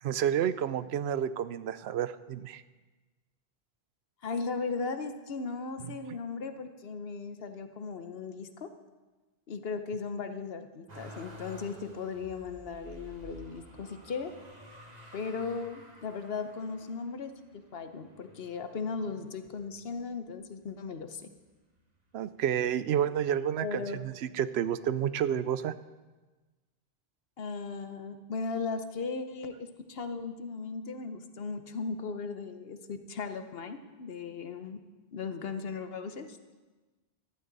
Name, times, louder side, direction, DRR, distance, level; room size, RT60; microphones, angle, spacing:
voice 1, 0.0-2.6 5.8-5.9 22.1-25.7, right 9 dB, 85° right, 14 dB, 0.8 m, -30 dB
voice 2, 4.2-8.7 9.5-14.3 15.1-17.3 17.7-21.2 23.6-24.0 27.4-34.8 35.1-36.4, left 4 dB, 70° left, 9 dB, 1.1 m, -37 dB
Motor vehicle (road), 10.9-20.0 20.6-21.4 21.7-22.8 23.8-23.9, equal, 40° right, 1.8 m, -52 dB
15.5 x 12.5 x 4.0 m, 1.3 s
omnidirectional pair, 1.1 m